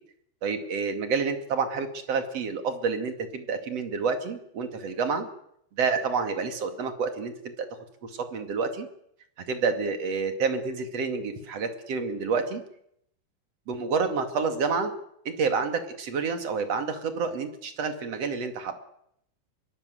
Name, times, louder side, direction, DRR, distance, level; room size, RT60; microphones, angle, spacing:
voice 1, 0.4-5.3 5.8-7.7 8.0-8.9 9.5-12.6 13.7-14.9 15.2-18.7, right 5 dB, 40° right, 7 dB, 2.6 m, -28 dB
25.5 x 22.5 x 7.9 m, 0.73 s
omnidirectional pair, 5.6 m